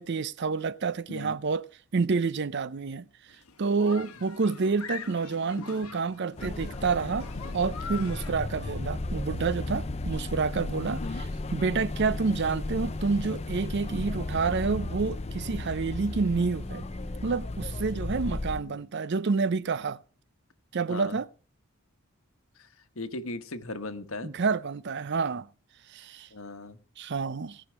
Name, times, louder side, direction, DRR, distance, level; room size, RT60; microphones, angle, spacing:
voice 1, 0.0-1.7 1.9-3.1 3.6-7.3 7.5-11.3 11.5-16.9 17.2-20.0 20.7-21.3 24.2-25.5 25.9-26.3 27.0-27.6, right 4 dB, 50° right, 0.5 m, -28 dB
sound 1, 3.3-8.3, left 5 dB, 90° left, 1.2 m, -43 dB
sound 2, 6.4-18.6, left 2 dB, 30° left, 0.6 m, -34 dB
voice 2, 20.9-21.2 22.6-22.7 22.9-24.3 26.3-26.8, left 2 dB, 70° left, 1.2 m, -38 dB
18.0 x 6.2 x 6.0 m
head